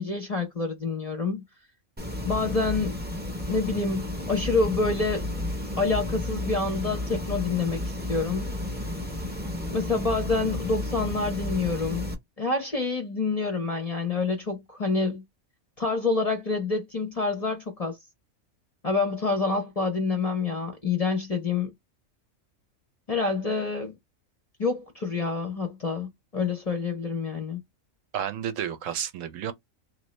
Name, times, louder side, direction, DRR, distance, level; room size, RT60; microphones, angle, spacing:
voice 1, 0.0-1.4 2.2-3.0 3.5-5.2 5.8-8.5 9.7-12.1 12.4-15.2 15.8-18.0 18.8-21.7 23.1-24.0 24.6-27.6, left 4 dB, 40° left, 0.6 m, -27 dB
sound 1, 2.0-12.1, left 1 dB, 10° right, 0.6 m, -32 dB
voice 2, 28.1-29.5, right 9 dB, 75° right, 0.9 m, -31 dB
3.0 x 2.6 x 3.1 m
omnidirectional pair, 1.4 m